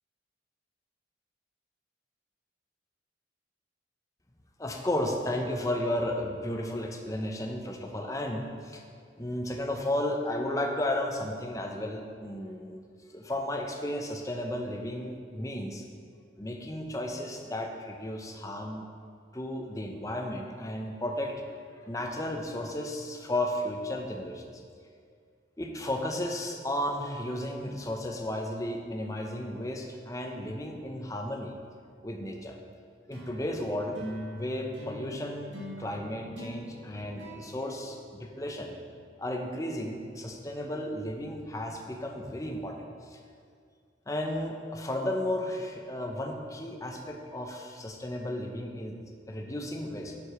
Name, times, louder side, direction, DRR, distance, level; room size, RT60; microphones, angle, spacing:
voice 1, 4.6-8.8 9.2-12.8 13.1-15.8 16.4-18.9 19.3-21.4 21.9-24.6 25.6-31.6 32.0-32.6 33.1-34.0 34.3-35.5 35.8-38.8 39.2-42.8 43.1-43.2 44.1-49.0 49.3-50.1, left 1 dB, 20° left, 2 dB, 0.7 m, -34 dB
sound 1, 33.1-38.7, equal, 85° right, 2.3 m, -43 dB
8.0 x 5.1 x 5.9 m, 2.2 s
head